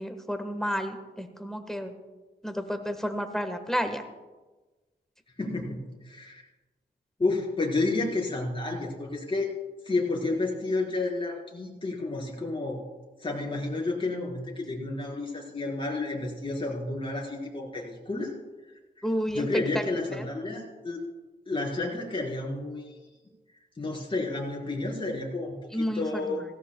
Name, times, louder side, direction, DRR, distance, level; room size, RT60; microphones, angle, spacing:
voice 1, 0.0-1.9 2.4-4.0 19.0-19.8 20.2-20.3 25.7-26.4, equal, ahead, 6 dB, 1.3 m, -31 dB
voice 2, 5.4-6.4 7.2-9.5 9.8-12.8 13.2-18.3 19.0-19.1 19.3-21.0 21.5-22.8 23.8-26.4, left 2 dB, 30° left, -2 dB, 4.4 m, -31 dB
17.0 x 16.5 x 2.3 m, 1.2 s
wide cardioid pair, 90°, 18 cm